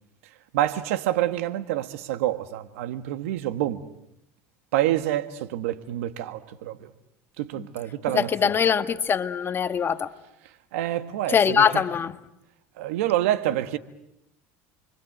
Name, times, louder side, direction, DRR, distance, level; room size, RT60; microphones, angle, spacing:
voice 1, 0.5-3.8 4.7-6.9 7.4-8.3 10.7-11.8 12.8-13.8, right 13 dB, 85° right, 1.6 m, -27 dB
voice 2, 8.1-10.1 11.3-12.1, left 7 dB, 30° left, 1.6 m, -22 dB
29.0 x 24.5 x 8.0 m
supercardioid pair, 100°, 7 cm